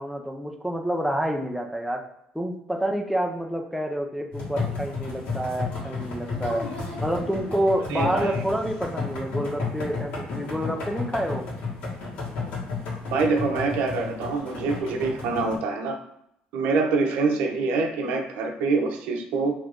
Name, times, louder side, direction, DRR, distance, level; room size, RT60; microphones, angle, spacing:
voice 1, 0.0-2.0 2.3-6.6 7.0-11.5, right 1 dB, ahead, 2 dB, 0.4 m, -28 dB
sound 1, 4.3-15.6, left 3 dB, 65° left, 1.4 m, -32 dB
voice 2, 7.9-8.4 13.1-15.9 16.5-19.5, right 4 dB, 90° right, 3 dB, 0.6 m, -25 dB
2.9 x 2.5 x 3.4 m, 0.76 s
cardioid pair, 150°, 3 cm